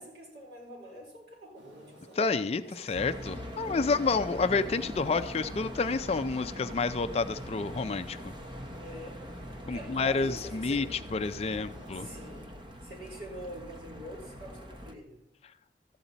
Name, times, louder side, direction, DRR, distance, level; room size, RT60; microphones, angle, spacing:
voice 1, 0.0-2.2 2.6-3.9 4.3-4.4 8.8-9.2 9.7-10.9 11.9-15.2, right 1 dB, 60° right, -3 dB, 4.3 m, -46 dB
sound 1, 1.5-12.5, equal, 80° right, 2.7 m, -53 dB
voice 2, 2.2-8.2 9.7-10.8 11.1-12.1, left 4 dB, 35° left, 10 dB, 0.4 m, -29 dB
sound 2, 2.9-14.9, equal, 25° right, 0.8 m, -42 dB
13.5 x 8.7 x 4.0 m, 0.83 s
head